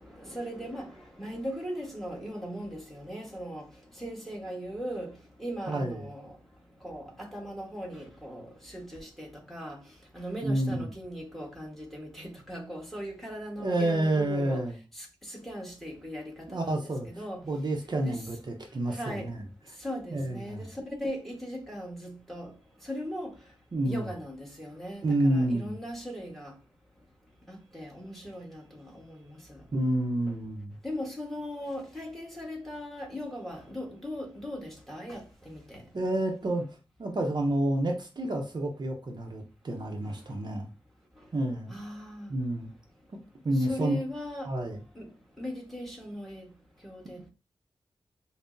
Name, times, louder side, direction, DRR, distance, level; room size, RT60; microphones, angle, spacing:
voice 1, 0.2-0.9 1.2-3.7 4.0-5.1 5.4-6.3 6.8-9.8 10.1-14.6 15.3-17.4 18.0-18.2 18.9-19.3 19.8-20.7 21.0-22.5 22.9-23.3 23.8-26.5 27.5-29.1 30.8-35.2 35.5-35.8 41.7-42.3 43.7-44.5 44.9-45.1 45.4-46.4 46.8-47.2, equal, 5° left, 1.3 m, -38 dB
voice 2, 5.7-6.1 10.4-10.9 13.6-14.8 16.5-17.1 17.4-19.5 20.1-20.6 23.7-24.1 25.0-25.8 29.7-30.8 35.9-36.7 37.0-40.7 41.3-41.7 42.3-42.7 43.4-44.0 44.4-44.8, right 1 dB, 50° right, 0.6 m, -29 dB
5.5 x 2.0 x 2.6 m
wide cardioid pair, 85°, 9 cm